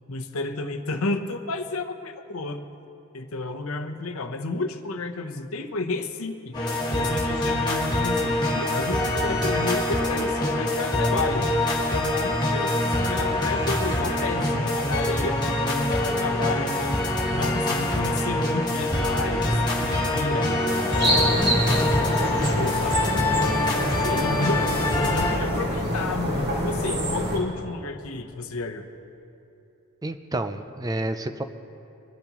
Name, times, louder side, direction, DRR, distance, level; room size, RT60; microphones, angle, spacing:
voice 1, 0.1-2.7 3.1-6.6 6.9-8.4 8.7-11.5 11.8-15.4 15.7-17.1 17.3-22.0 22.6-24.7 24.9-28.9, left 3 dB, 70° left, 6 dB, 0.8 m, -31 dB
sound 1, 6.5-25.4, left 1 dB, 20° left, 1.7 m, -25 dB
sound 2, 8.5-9.8 11.1-12.1 12.6-12.7 13.7-14.3, right 2 dB, 75° right, 1.1 m, -41 dB
sound 3, 21.0-27.4, equal, 50° right, 3.0 m, -26 dB
voice 2, 30.0-31.4, right 1 dB, 15° right, 9 dB, 0.4 m, -29 dB
22.5 x 12.0 x 3.0 m, 2.8 s
head